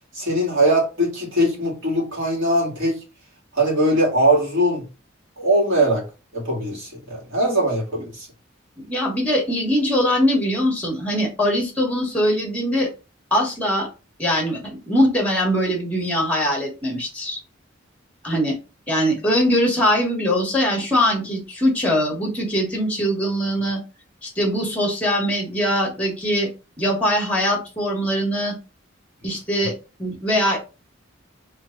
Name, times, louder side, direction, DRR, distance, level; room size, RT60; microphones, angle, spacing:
voice 1, 0.1-3.0 3.5-4.8 5.4-6.1 6.3-8.3, right 1 dB, 75° right, 2.2 m, -21 dB
voice 2, 8.9-12.9 13.3-13.9 14.2-14.6 14.9-17.4 18.2-18.5 18.9-23.8 24.2-26.5 26.8-28.6 29.2-29.7 30.0-30.6, equal, 5° left, 1.5 m, -21 dB
3.3 x 3.3 x 3.8 m
head